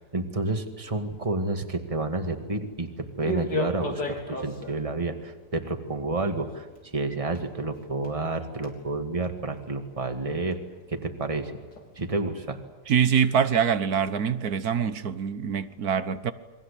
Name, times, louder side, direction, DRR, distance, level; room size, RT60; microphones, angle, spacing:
voice 1, 0.0-10.6 10.9-11.5 12.0-12.6, right 2 dB, 20° right, 2.2 m, -30 dB
sound 1, 0.8-12.2, left 2 dB, 80° left, 4.4 m, -40 dB
voice 2, 12.9-16.3, right 7 dB, 65° right, 1.6 m, -24 dB
29.5 x 23.0 x 8.5 m
omnidirectional pair, 1.8 m